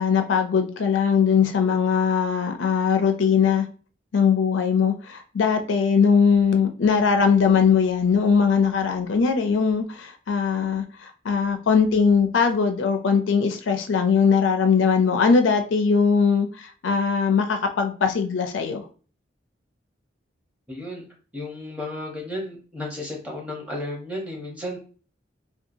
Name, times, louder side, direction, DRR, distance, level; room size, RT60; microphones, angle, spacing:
voice 1, 0.0-3.6 4.1-10.8 11.3-16.5 16.8-18.8, left 6 dB, 80° left, 0.4 m, -20 dB
voice 2, 20.7-21.0 21.3-24.8, left 1 dB, 5° right, 0.7 m, -33 dB
2.8 x 2.2 x 2.6 m
head